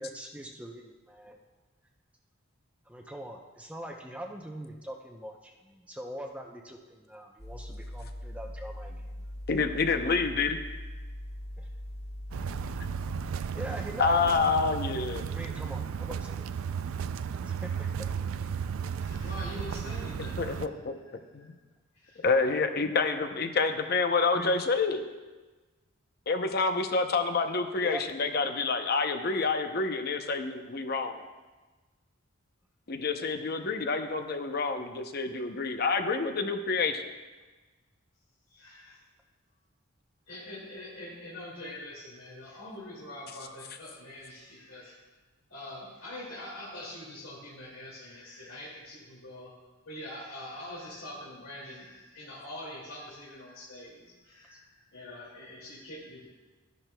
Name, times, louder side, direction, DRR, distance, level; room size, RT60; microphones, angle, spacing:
voice 1, 0.0-1.4 2.9-9.3 11.6-11.7 13.5-14.2 15.3-16.4 16.9-17.0 17.4-18.1 24.3-24.6 27.7-28.0 34.8-35.0 54.5-54.6, right 1 dB, 5° right, 1 dB, 0.6 m, -42 dB
sound 1, 7.4-13.3, left 1 dB, 30° left, 1.2 m, -41 dB
voice 2, 9.5-10.6 14.0-15.3 20.4-21.0 21.3-21.5 22.2-25.1 26.3-31.2 32.9-37.0, left 4 dB, 50° left, 7 dB, 0.7 m, -28 dB
sound 2, 12.3-20.7, right 7 dB, 80° right, 0.4 m, -34 dB
voice 3, 19.0-20.7 21.4-21.5 21.9-22.2 38.5-39.0 40.3-45.0 45.5-49.5 49.8-56.3, left 1 dB, 90° left, -6 dB, 2.4 m, -44 dB
13.5 x 10.5 x 2.2 m, 1.3 s
head